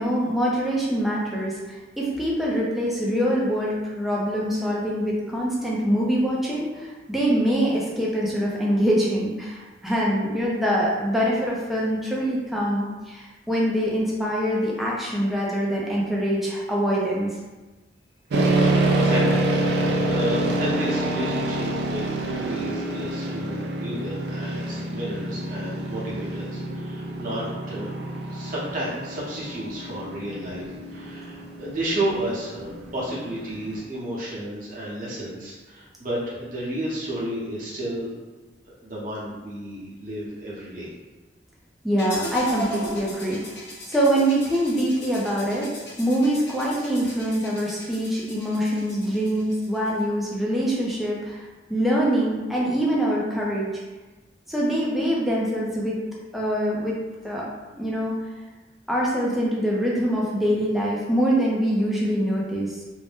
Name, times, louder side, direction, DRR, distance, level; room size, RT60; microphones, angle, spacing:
voice 1, 0.0-1.6 2.0-17.3 41.8-43.6 43.9-45.7 46.0-51.4 51.7-53.7 54.5-56.0 56.3-57.0 57.2-57.5 57.7-58.1 58.9-62.7, equal, ahead, -5 dB, 0.4 m, -24 dB
sound 1, 18.3-33.8, right 2 dB, 65° right, 0.4 m, -27 dB
voice 2, 18.6-19.7 20.0-28.0 28.3-38.1 38.7-40.9, right 1 dB, 45° right, -7 dB, 0.9 m, -32 dB
sound 2, 42.0-50.0, left 1 dB, 65° left, 0.9 m, -37 dB
2.6 x 2.1 x 3.4 m, 1.2 s
head